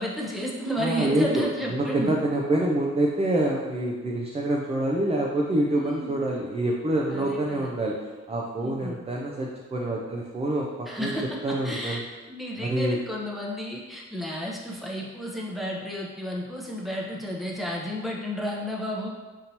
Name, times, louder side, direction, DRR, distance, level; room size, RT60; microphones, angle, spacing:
voice 1, 0.0-2.2 5.8-6.1 7.1-7.7 8.6-9.0 10.9-11.3 11.6-12.0 12.3-19.1, equal, ahead, -3 dB, 0.8 m, -32 dB
voice 2, 0.8-8.0 8.3-11.1 11.4-12.0 12.6-13.0, right 1 dB, 20° right, -2 dB, 0.5 m, -26 dB
5.2 x 2.8 x 2.9 m, 1.2 s
cardioid pair, 90°, 30 cm